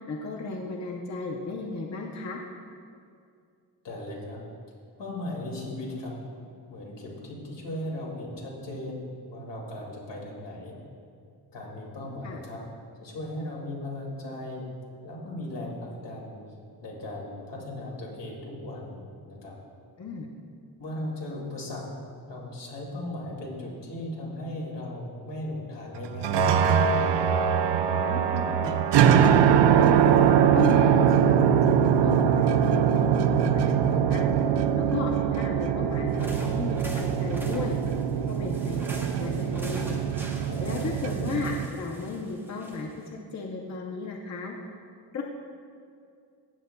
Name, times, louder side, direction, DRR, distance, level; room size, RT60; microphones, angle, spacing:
voice 1, 0.1-2.4 12.2-12.4 20.0-20.3 27.9-29.2 29.8-34.2 34.8-37.8 38.1-40.0 40.6-42.9 43.3-44.5 45.1-45.2, left 3 dB, 40° left, 0 dB, 0.7 m, -34 dB
voice 2, 3.8-4.4 5.0-6.1 6.7-9.0 9.3-10.7 11.5-12.6 13.0-14.7 15.0-16.4 16.8-19.5 20.8-21.8 22.3-26.7 40.5-40.8, left 1 dB, 75° left, -2 dB, 2.3 m, -37 dB
sound 1, 26.1-41.7, right 8 dB, 75° right, 0.5 m, -22 dB
sound 2, 36.1-43.1, right 1 dB, 5° right, 0.8 m, -44 dB
16.5 x 8.0 x 2.2 m, 2.4 s
wide cardioid pair, 150°, 42 cm